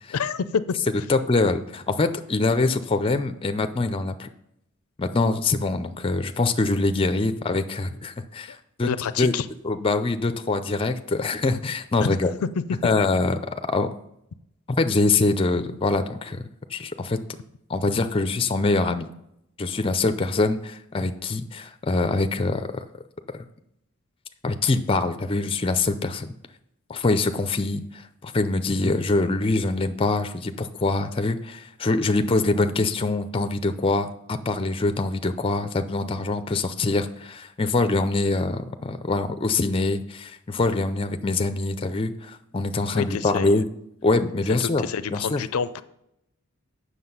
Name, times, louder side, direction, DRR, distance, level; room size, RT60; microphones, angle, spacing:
voice 1, 0.1-0.6 8.5-8.6 8.8-9.5 12.0-12.2 12.6-12.9 42.9-43.6 44.6-45.8, left 6 dB, 75° left, 15 dB, 0.4 m, -28 dB
voice 2, 1.1-4.3 5.0-8.9 9.2-9.3 9.6-12.3 12.8-13.4 13.7-13.9 14.8-16.4 16.7-17.2 17.7-19.1 19.6-22.8 24.4-26.3 26.9-43.6 44.0-44.8 45.1-45.4, left 3 dB, 25° left, 9 dB, 0.4 m, -24 dB
7.7 x 6.5 x 5.5 m, 0.79 s
head